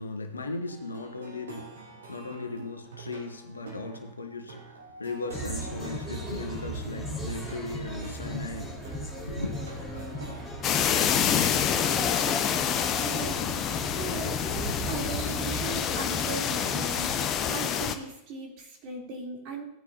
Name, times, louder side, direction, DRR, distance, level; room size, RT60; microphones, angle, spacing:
voice 1, 0.0-8.8 9.3-9.7, left 3 dB, 75° left, 1.2 m, -37 dB
Plucked string instrument, 0.7-10.5, right 3 dB, 65° right, 3.0 m, -46 dB
sound 1, 5.3-17.3, equal, 5° right, 4.5 m, -36 dB
sound 2, 10.6-18.0, left 8 dB, 30° left, 0.8 m, -27 dB
voice 2, 13.0-13.6 13.9-19.6, right 3 dB, 40° right, 3.5 m, -38 dB
16.0 x 9.8 x 2.9 m
figure-of-eight pair, 90°, 0 cm